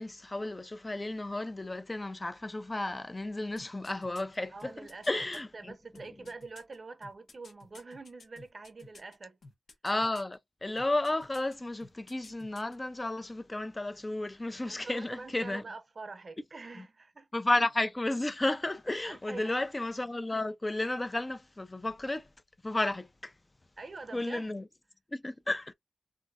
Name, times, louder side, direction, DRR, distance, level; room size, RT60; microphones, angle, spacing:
voice 1, 0.0-4.7 5.1-5.7 9.8-15.6 16.8-16.9 17.3-22.3 22.6-23.3 24.1-24.7 25.1-25.7, left 2 dB, 25° left, 0.4 m, -33 dB
sound 1, 3.6-5.4 5.9-9.2 9.4-10.3 10.8-11.5 11.8-12.8 13.1-13.2, left 3 dB, 90° left, 0.9 m, -53 dB
voice 2, 4.5-5.2 5.5-9.4 14.6-17.3 19.0-19.6 23.8-24.5, right 3 dB, 45° right, 0.6 m, -45 dB
3.3 x 2.6 x 2.4 m
wide cardioid pair, 100°, 0 cm